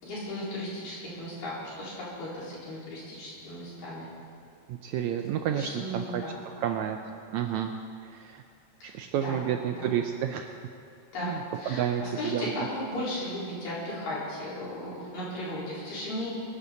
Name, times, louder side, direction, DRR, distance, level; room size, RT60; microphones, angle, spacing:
voice 1, 0.0-4.1 5.5-6.3 8.8-9.4 9.8-10.0 11.1-16.3, left 1 dB, 85° left, -8 dB, 6.0 m, -36 dB
voice 2, 4.7-6.2 6.6-7.0 7.3-7.7 8.3-8.4 8.8-10.5 11.2-11.4 11.7-12.5, right 9 dB, 80° right, 5 dB, 1.7 m, -30 dB
23.5 x 11.0 x 3.9 m, 2.5 s
omnidirectional pair, 3.8 m